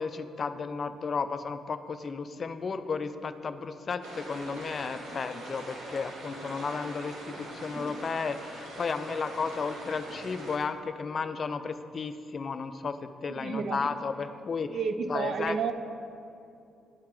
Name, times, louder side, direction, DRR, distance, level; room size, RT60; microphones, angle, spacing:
voice 1, 0.0-14.8 15.1-15.7, left 5 dB, 45° left, 10 dB, 0.4 m, -33 dB
sound 1, 4.0-10.6, right 1 dB, 80° right, 1.3 m, -42 dB
voice 2, 13.3-14.0 14.7-15.7, right 5 dB, 60° right, 10 dB, 0.4 m, -31 dB
11.0 x 3.8 x 4.3 m, 2.6 s
cardioid pair, 90°, 0 cm